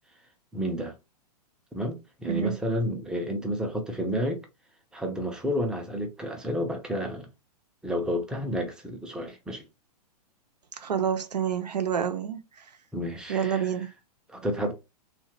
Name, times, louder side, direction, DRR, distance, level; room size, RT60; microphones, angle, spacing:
voice 1, 0.5-0.9 1.7-4.4 4.9-7.3 7.8-9.7 12.9-13.7 14.3-14.7, equal, 5° right, 0.5 m, -30 dB
voice 2, 2.2-2.5 10.8-12.4 13.3-13.9, right 8 dB, 80° right, 0.6 m, -28 dB
2.8 x 2.4 x 2.8 m
figure-of-eight pair, 115°, 21 cm